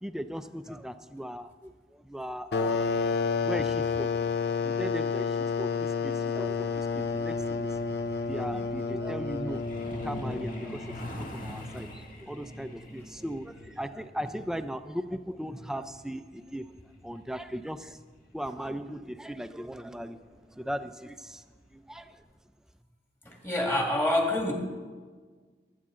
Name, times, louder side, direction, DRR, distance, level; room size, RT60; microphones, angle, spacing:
voice 1, 0.0-3.1 3.4-4.1 4.5-7.7 8.3-9.7 10.0-16.7 17.0-18.0 18.3-21.4 21.7-22.2, equal, 5° right, 10 dB, 0.4 m, -38 dB
sound 1, 2.5-10.9, left 5 dB, 70° left, 0.5 m, -30 dB
Truck, 6.5-18.8 20.0-20.2 20.6-20.7 21.1-21.4 21.7-21.8 22.3-22.4, left 1 dB, 50° left, 1.7 m, -44 dB
voice 2, 23.3-24.5, left 1 dB, 15° left, 0 dB, 1.9 m, -26 dB
20.0 x 8.5 x 3.8 m, 1.5 s
head